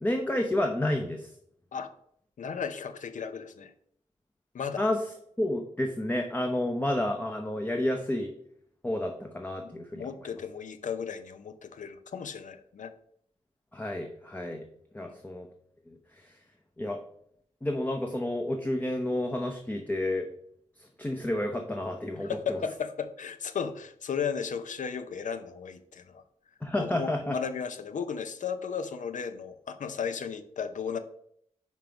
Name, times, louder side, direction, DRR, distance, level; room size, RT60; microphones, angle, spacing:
voice 1, 0.0-1.3 4.8-5.0 5.4-8.3 8.8-10.1 13.7-14.6 14.9-15.5 16.2-16.3 16.8-17.0 17.6-20.3 21.0-22.6 26.6-27.4, left 1 dB, 15° left, 3 dB, 0.7 m, -30 dB
voice 2, 2.4-3.7 4.5-4.8 9.6-12.9 15.0-15.2 22.2-26.2 26.8-31.0, left 6 dB, 85° left, 10 dB, 0.6 m, -35 dB
5.3 x 4.6 x 5.1 m, 0.70 s
wide cardioid pair, 100°, 13 cm